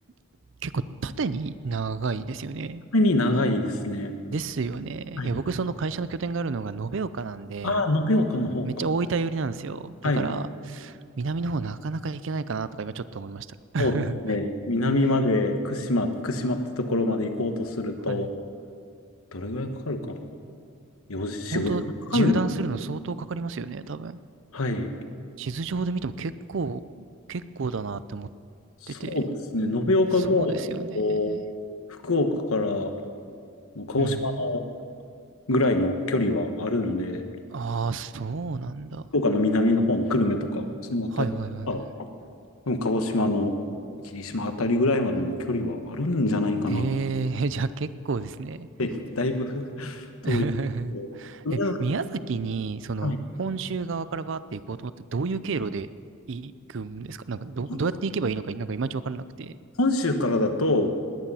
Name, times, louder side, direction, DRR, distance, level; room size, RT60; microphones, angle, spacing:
voice 1, 0.6-2.8 4.3-7.8 8.6-14.2 18.1-18.3 21.5-21.8 22.1-24.2 25.4-28.3 28.9-29.2 30.2-31.4 34.0-34.6 37.5-39.0 41.1-41.9 46.7-48.7 50.2-55.9 56.3-59.5, right 4 dB, 60° right, 15 dB, 0.5 m, -31 dB
voice 2, 2.9-4.1 5.2-5.4 7.6-8.7 10.0-10.3 13.8-14.0 14.2-18.3 19.3-20.3 21.1-21.8 22.1-22.4 24.5-24.9 28.8-30.7 30.9-31.4 32.0-32.9 33.7-34.7 35.5-37.3 39.1-41.3 41.7-41.8 42.7-43.6 44.1-46.9 48.8-50.4 50.9-51.1 51.4-51.8 53.0-53.2 57.7-57.8 59.8-60.9, left 2 dB, 85° left, 6 dB, 1.3 m, -25 dB
20.0 x 10.0 x 5.6 m, 2.3 s
head